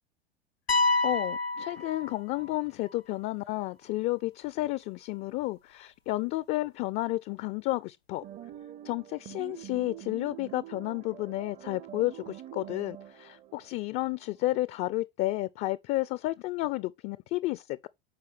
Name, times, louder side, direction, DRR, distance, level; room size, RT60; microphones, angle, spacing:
sound 1, 0.7-2.6, left 2 dB, 90° left, 0.6 m, -28 dB
voice 1, 1.0-8.2 8.8-17.9, left 18 dB, 35° left, 0.4 m, -31 dB
sound 2, 8.2-14.6, right 12 dB, 25° right, 0.5 m, -46 dB
12.5 x 4.7 x 3.3 m
figure-of-eight pair, 80°, 30 cm